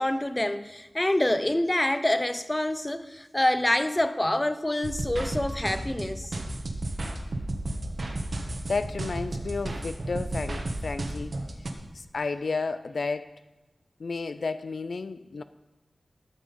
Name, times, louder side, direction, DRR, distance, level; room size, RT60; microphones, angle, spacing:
voice 1, 0.0-6.3, left 1 dB, 20° left, 0.7 m, -26 dB
sound 1, 4.8-11.7, right 1 dB, 60° right, 1.4 m, -33 dB
voice 2, 8.7-11.4 11.9-13.4 14.0-15.4, left 4 dB, 75° left, 0.4 m, -32 dB
13.5 x 6.2 x 5.4 m
cardioid pair, 55°, 0 cm